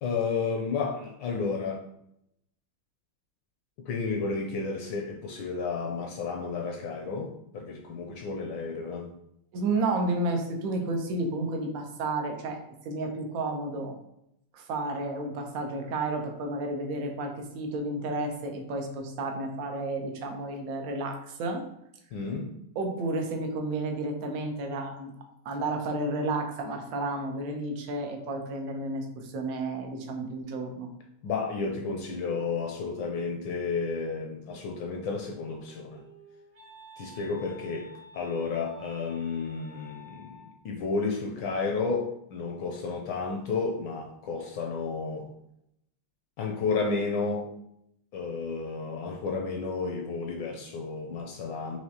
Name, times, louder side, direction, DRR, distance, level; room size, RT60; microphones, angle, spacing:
voice 1, 0.0-1.9 3.8-9.1 22.1-22.5 31.2-36.0 37.0-45.3 46.4-47.5 48.1-51.8, left 4 dB, 75° left, 2 dB, 1.1 m, -32 dB
voice 2, 9.5-12.6 12.8-14.0 14.5-21.7 22.8-25.1 25.4-30.9, right 2 dB, 80° right, 3 dB, 0.8 m, -31 dB
Wind instrument woodwind instrument, 35.5-40.6, left 1 dB, 65° right, 1.3 m, -51 dB
4.8 x 3.0 x 2.8 m, 0.78 s
omnidirectional pair, 2.3 m